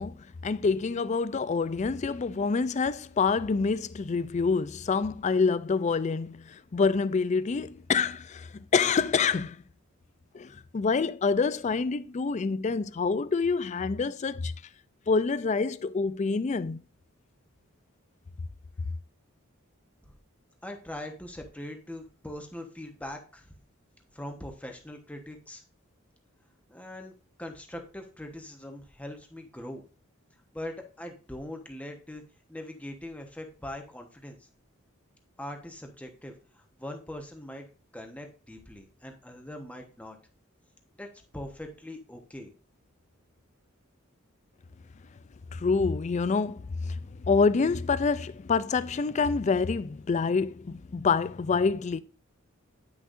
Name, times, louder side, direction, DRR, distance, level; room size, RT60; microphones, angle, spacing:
voice 1, 0.0-9.6 10.3-14.5 15.1-16.8 45.5-47.0 47.3-52.0, left 4 dB, 35° left, 0.3 m, -27 dB
voice 2, 20.6-23.5 24.1-25.6 26.7-27.1 27.4-29.8 30.5-32.2 32.5-34.5 35.4-37.7 37.9-40.2 41.0-41.1 41.3-42.5, left 1 dB, 5° left, 1.1 m, -41 dB
10.0 x 6.4 x 2.6 m
head